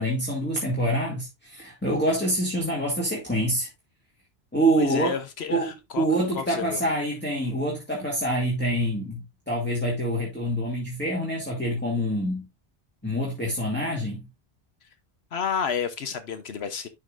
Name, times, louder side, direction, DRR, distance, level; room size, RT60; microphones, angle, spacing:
voice 1, 0.0-3.7 4.5-5.1 5.5-5.7 6.0-12.5 13.0-14.2, right 1 dB, 10° left, 2.1 m, -26 dB
voice 2, 4.8-6.1 6.3-6.8 15.3-16.9, left 7 dB, 75° left, 1.1 m, -30 dB
11.0 x 5.5 x 2.4 m
omnidirectional pair, 1.1 m